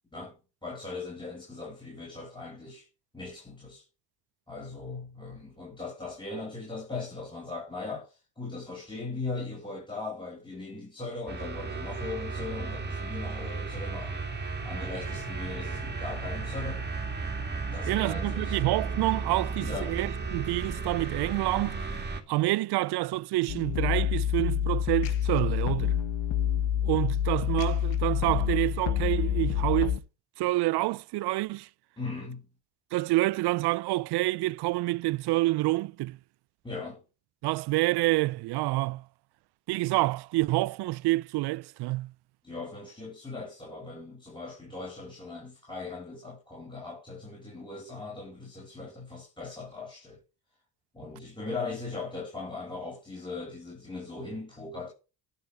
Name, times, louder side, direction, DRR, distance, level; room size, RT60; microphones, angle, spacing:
voice 1, 0.1-2.9 3.1-3.8 4.5-14.2 14.6-16.8 17.6-18.6 19.6-20.0 32.0-32.5 36.6-37.0 42.4-50.2 50.9-54.9, left 3 dB, 10° left, 5.9 m, -39 dB
sound 1, 11.3-22.2, right 4 dB, 25° right, 2.5 m, -34 dB
voice 2, 17.9-21.8 22.3-25.9 26.8-30.0 30.4-31.7 32.9-36.2 37.4-39.0 39.7-42.1, right 19 dB, 65° right, 0.5 m, -27 dB
sound 2, 23.5-30.0, left 10 dB, 75° left, 1.5 m, -27 dB
11.5 x 6.7 x 5.1 m
cardioid pair, 95°, 44 cm